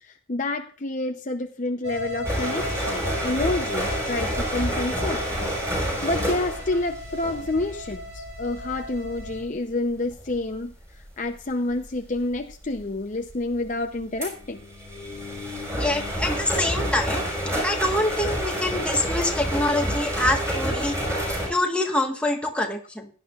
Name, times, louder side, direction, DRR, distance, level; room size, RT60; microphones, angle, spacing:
voice 1, 0.0-5.2 6.0-10.7 11.2-14.6, left 2 dB, 35° left, 5 dB, 0.7 m, -28 dB
sound 1, 1.8-9.4, left 1 dB, 65° right, 6.2 m, -36 dB
sound 2, 2.2-7.8 8.3-8.6 9.2-9.5 10.1-10.4 12.2-12.3 12.8-12.9 13.3-13.4 14.2-21.5, equal, 15° right, 5.2 m, -28 dB
voice 2, 15.8-17.2 17.6-21.0 21.5-23.1, left 1 dB, 5° left, 1 dB, 1.3 m, -25 dB
17.0 x 10.5 x 2.4 m, 0.41 s
head